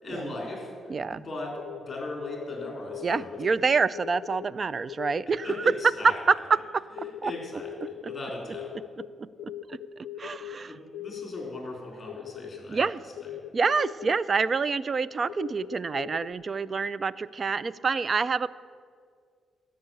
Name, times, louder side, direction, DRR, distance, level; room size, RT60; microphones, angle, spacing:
voice 1, 0.0-0.7 1.1-3.4 5.4-6.1 7.2-8.7 10.2-12.9 13.2-13.3, left 2 dB, 30° left, -1 dB, 3.7 m, -38 dB
voice 2, 0.9-1.2 3.0-5.6 6.3-6.4 7.2-7.3 8.0-8.1 9.0-9.3 9.7-9.8 10.2-10.7 12.7-13.0 13.5-18.5, right 5 dB, 40° right, 18 dB, 0.3 m, -27 dB
sound 1, 1.6-3.6 3.9-4.5 4.9-5.8 7.0-8.2 8.5-10.6 10.9-11.6 12.1-12.6 13.2-14.2 14.8-16.3, left 11 dB, 85° left, 0.5 m, -40 dB
13.0 x 5.5 x 8.9 m, 2.1 s
cardioid pair, 110°, 0 cm